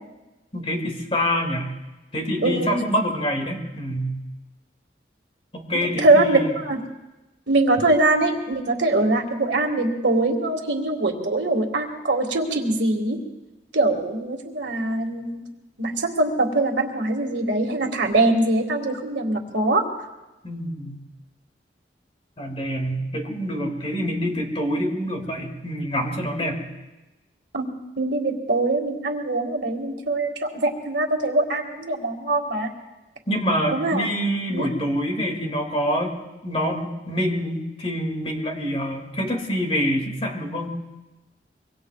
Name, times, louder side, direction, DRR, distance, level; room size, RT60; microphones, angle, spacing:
voice 1, 0.5-1.7 2.1-4.2 5.5-6.5 20.4-21.0 22.4-26.6 33.3-36.2 36.4-40.7, equal, 35° left, 2 dB, 2.3 m, -26 dB
voice 2, 2.4-2.8 5.7-6.8 7.5-13.2 13.7-15.4 15.8-19.9 27.5-27.7 28.0-32.7 33.7-34.1 34.5-34.7, right 2 dB, 85° right, 3 dB, 2.0 m, -22 dB
24.5 x 24.0 x 2.4 m, 1.1 s
head